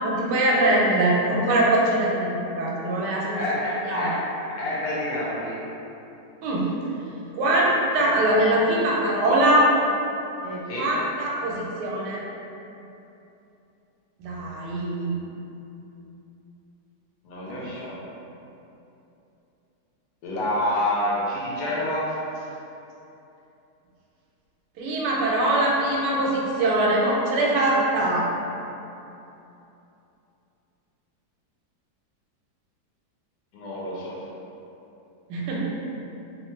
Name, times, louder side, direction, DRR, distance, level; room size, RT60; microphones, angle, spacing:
voice 1, 0.0-3.4 3.8-4.2 6.4-6.7 7.3-9.7 10.4-12.2 14.2-15.2 17.5-17.6 24.8-28.3 35.3-35.7, right 1 dB, 85° right, -4 dB, 1.2 m, -22 dB
voice 2, 3.4-4.3 4.6-5.6 10.7-10.9 17.2-17.9 20.2-22.4 33.5-34.2, left 1 dB, 75° left, -6 dB, 1.3 m, -28 dB
3.0 x 2.2 x 3.0 m, 2.9 s
omnidirectional pair, 1.8 m